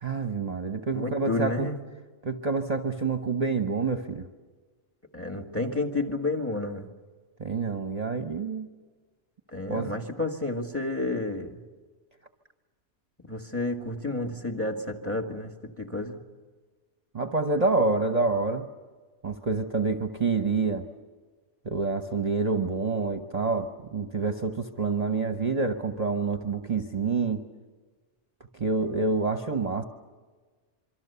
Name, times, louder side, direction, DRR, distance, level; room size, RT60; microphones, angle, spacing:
voice 1, 0.0-1.7 2.2-4.3 7.4-8.7 9.7-9.9 17.1-18.7 19.2-20.8 21.6-27.4 28.5-29.8, right 4 dB, 35° right, 6 dB, 1.0 m, -27 dB
voice 2, 0.9-1.8 5.1-6.9 9.5-11.5 13.3-16.2, left 2 dB, 10° left, 4 dB, 1.8 m, -30 dB
26.0 x 24.5 x 6.9 m, 1.4 s
omnidirectional pair, 1.2 m